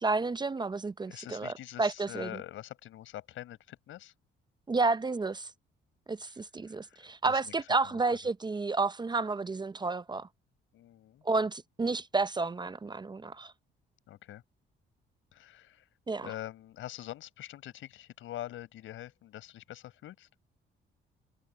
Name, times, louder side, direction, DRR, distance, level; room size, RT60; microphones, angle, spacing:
voice 1, 0.0-1.5 1.8-2.3 4.7-5.5 6.1-10.3 11.2-13.5 16.1-16.3, right 3 dB, 20° right, 0.6 m, -31 dB
voice 2, 1.0-4.1 6.3-6.4 6.7-8.0 10.7-11.2 14.1-14.4 15.3-15.9 16.2-20.3, left 13 dB, 80° left, 6.3 m, -45 dB
cardioid pair, 90°, 20 cm